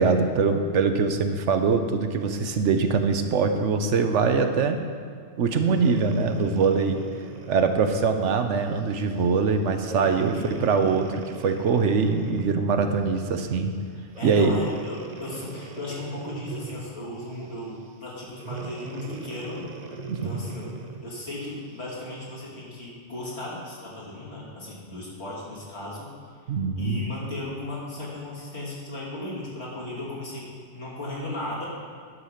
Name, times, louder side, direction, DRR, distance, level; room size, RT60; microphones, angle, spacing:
voice 1, 0.0-4.8 5.4-7.0 7.5-13.7 14.2-14.6 20.1-20.4 26.5-27.0, right 5 dB, 75° right, 6 dB, 1.1 m, -23 dB
Breathing, 5.5-8.2 8.8-9.0 9.8-12.7 14.1-17.0 18.4-21.1 21.8-21.9, right 5 dB, 45° right, 0.6 m, -39 dB
voice 2, 13.9-19.7 20.1-20.7 21.0-26.1 26.4-31.7, left 2 dB, 65° left, -6 dB, 2.9 m, -36 dB
11.0 x 6.7 x 5.6 m, 2.2 s
omnidirectional pair, 1.2 m